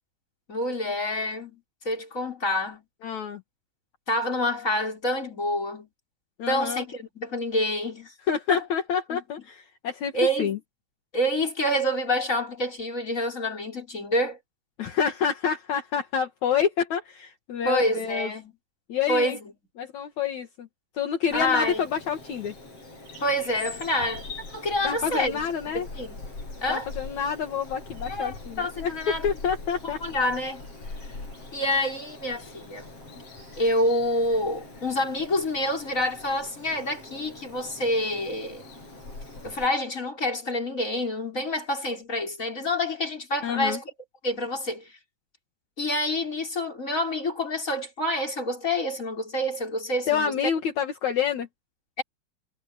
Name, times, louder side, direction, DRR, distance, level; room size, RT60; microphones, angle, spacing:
voice 1, 0.5-2.8 4.1-5.9 6.5-8.1 8.5-8.6 9.1-9.2 10.1-10.5 11.1-14.4 17.6-18.5 19.1-19.5 21.3-21.8 23.2-25.4 25.7-26.2 26.6-26.9 28.1-29.3 30.0-30.6 31.5-32.9 33.6-38.6 39.4-43.8 44.2-45.0 45.8-50.4 52.0-52.1, left 1 dB, 20° left, 6.1 m, -27 dB
voice 2, 3.0-3.4 6.4-6.9 8.3-10.1 10.4-10.6 14.8-18.3 18.9-19.4 19.8-20.7 20.9-22.5 24.8-25.9 26.7-30.0 43.4-43.8 50.1-51.5, left 7 dB, 65° left, 3.1 m, -28 dB
Bird vocalization bird call bird song, 21.3-39.7, left 2 dB, 45° left, 7.7 m, -42 dB
omnidirectional pair, 3.7 m